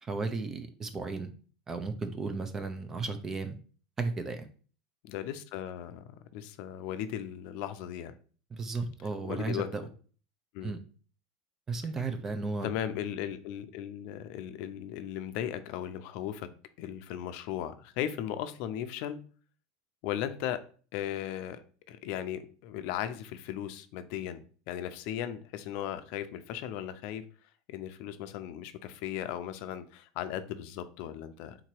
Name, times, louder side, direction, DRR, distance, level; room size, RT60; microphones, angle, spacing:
voice 1, 0.0-1.3 1.7-3.5 4.0-4.5 8.5-9.8 10.6-10.8 11.7-12.7, right 3 dB, 20° right, 0.6 m, -34 dB
voice 2, 5.0-8.1 9.2-9.7 10.5-10.7 12.6-16.5 16.8-19.2 20.0-20.6 20.9-27.3 27.7-31.6, left 10 dB, 60° left, 0.5 m, -37 dB
3.9 x 2.9 x 4.5 m
supercardioid pair, 135°, 2 cm